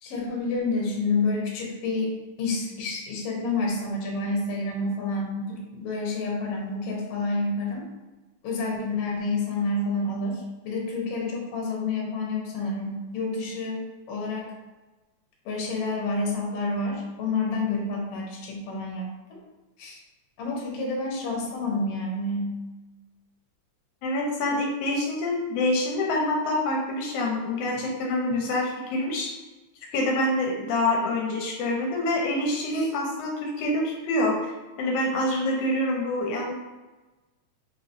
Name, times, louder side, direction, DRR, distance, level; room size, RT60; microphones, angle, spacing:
voice 1, 0.0-2.1 2.4-7.8 8.4-13.8 14.1-14.5 15.4-19.1 19.8-20.0 20.4-22.6 32.7-32.8, left 3 dB, 65° left, -2 dB, 1.7 m, -29 dB
voice 2, 24.0-29.3 29.9-34.5 34.8-36.5, left 1 dB, 85° left, -1 dB, 2.0 m, -26 dB
5.2 x 2.9 x 2.6 m, 1.2 s
omnidirectional pair, 3.5 m